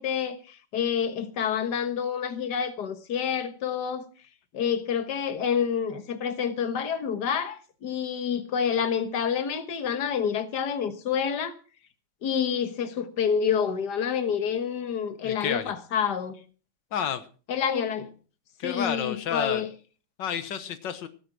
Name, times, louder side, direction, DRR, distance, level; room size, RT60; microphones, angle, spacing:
voice 1, 0.0-4.1 4.5-11.6 12.2-16.4 17.5-18.1 18.6-19.7, left 7 dB, 70° left, 1.9 m, -28 dB
voice 2, 15.2-15.7 16.9-17.2 18.6-19.6 20.2-21.1, left 8 dB, 90° left, 1.9 m, -30 dB
18.0 x 9.9 x 6.0 m
omnidirectional pair, 1.9 m